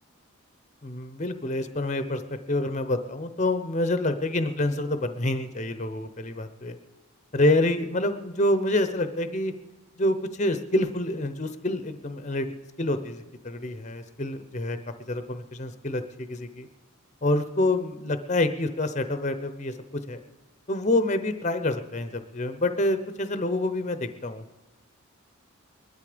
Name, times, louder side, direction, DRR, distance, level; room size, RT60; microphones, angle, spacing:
voice 1, 0.8-2.2 2.5-6.8 7.3-9.5 10.0-12.5 12.8-14.8 15.1-16.7 17.2-20.2 20.7-24.4, left 1 dB, 30° left, 10 dB, 0.8 m, -27 dB
21.0 x 12.0 x 5.1 m, 1.1 s
head